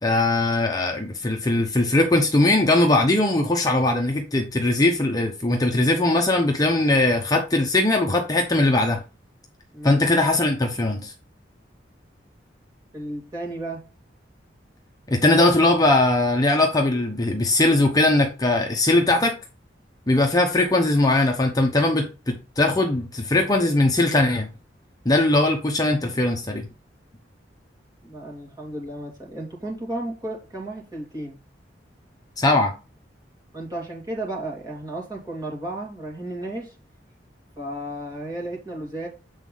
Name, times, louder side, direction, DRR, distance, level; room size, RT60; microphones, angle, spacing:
voice 1, 0.0-9.0 9.8-11.1 15.1-19.3 20.1-24.5 25.0-26.7 32.4-32.7, left 2 dB, 20° left, 0.8 m, -20 dB
voice 2, 12.9-13.8 28.0-31.4 33.5-36.7 37.6-39.1, right 1 dB, 20° right, 2.6 m, -33 dB
8.0 x 4.1 x 3.9 m
head